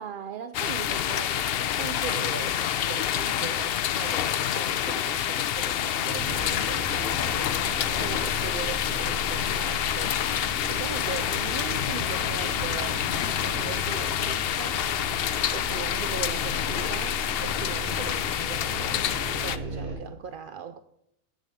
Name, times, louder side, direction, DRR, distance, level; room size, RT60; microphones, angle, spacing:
voice 1, 0.0-14.9 15.5-19.0 19.4-20.8, right 7 dB, 75° right, 0.5 m, -39 dB
sound 1, 0.5-19.6, left 10 dB, 65° left, 0.6 m, -28 dB
sound 2, 6.1-20.0, right 1 dB, 40° right, 3.5 m, -37 dB
8.3 x 7.8 x 6.5 m
omnidirectional pair, 1.4 m